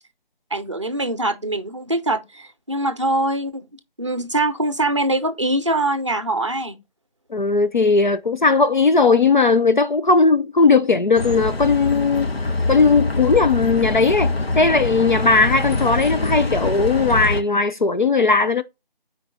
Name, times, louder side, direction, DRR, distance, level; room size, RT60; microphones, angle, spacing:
voice 1, 0.5-6.8, right 2 dB, 30° right, 0.6 m, -23 dB
voice 2, 7.3-18.6, left 4 dB, 55° left, 0.5 m, -17 dB
Bus, 11.1-17.4, left 2 dB, 85° left, 1.5 m, -24 dB
9.0 x 4.6 x 4.2 m
figure-of-eight pair, 170°, 30 cm